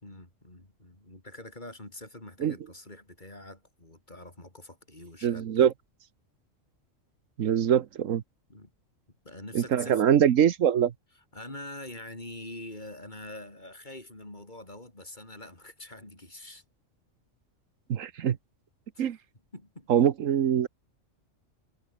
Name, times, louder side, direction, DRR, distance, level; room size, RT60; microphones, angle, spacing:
voice 1, 0.0-5.7 8.5-8.7 9.2-10.1 11.1-16.6 18.9-19.1 19.5-20.1, left 1 dB, 35° left, 4.8 m, -45 dB
voice 2, 5.2-5.7 7.4-8.2 9.5-10.9 17.9-18.4 19.0-19.2 19.9-20.7, right 9 dB, 80° right, 1.3 m, -23 dB
omnidirectional pair, 1.3 m